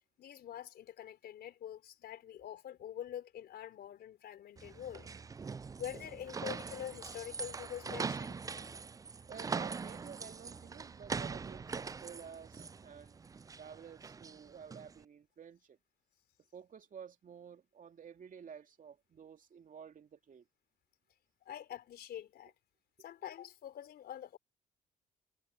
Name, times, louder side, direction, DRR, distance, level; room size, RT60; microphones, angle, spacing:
voice 1, 0.2-5.1 5.8-8.4 21.5-22.5 23.0-24.4, left 10 dB, 65° left, 4.0 m, -45 dB
sound 1, 4.6-15.0, right 5 dB, 20° right, 0.4 m, -42 dB
voice 2, 9.3-13.2 13.6-15.8 16.5-20.5, right 7 dB, 50° right, 2.7 m, -52 dB
hypercardioid pair, 55°, 18 cm